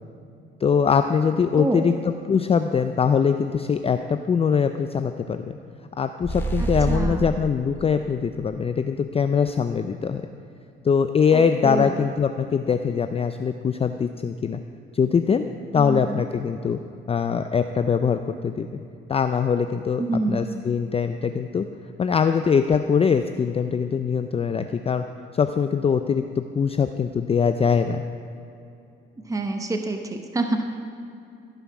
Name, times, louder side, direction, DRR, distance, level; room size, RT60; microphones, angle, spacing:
voice 1, 0.6-5.6 6.0-10.2 10.8-14.6 14.9-15.4 15.7-16.8 17.1-18.7 19.1-21.7 22.0-25.0 25.3-28.0, left 6 dB, 30° left, 8 dB, 0.4 m, -22 dB
voice 2, 1.6-1.9 6.9-7.3 11.3-12.0 15.7-16.2 20.0-20.4 29.3-30.6, right 2 dB, 15° right, 5 dB, 0.9 m, -27 dB
sound 1, 6.2-7.4, right 3 dB, 10° left, 1.3 m, -26 dB
15.5 x 5.6 x 6.0 m, 2.7 s
cardioid pair, 90°, 20 cm